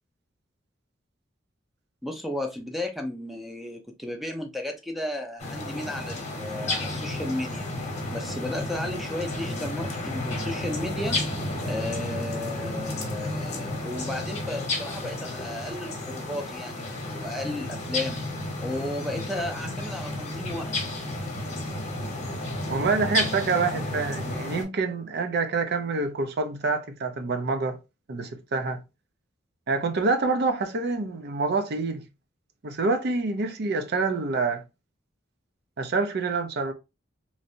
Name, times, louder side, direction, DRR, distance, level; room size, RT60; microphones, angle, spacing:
voice 1, 2.0-7.7 8.1-11.2 11.6-18.2 18.6-20.9, left 1 dB, ahead, 0.5 m, -34 dB
sound 1, 5.4-24.6, left 2 dB, 40° left, 0.9 m, -32 dB
voice 2, 22.7-27.8 28.1-28.8 29.7-32.0 32.6-34.6 35.8-36.7, right 3 dB, 55° right, 0.5 m, -26 dB
3.1 x 2.6 x 2.6 m
head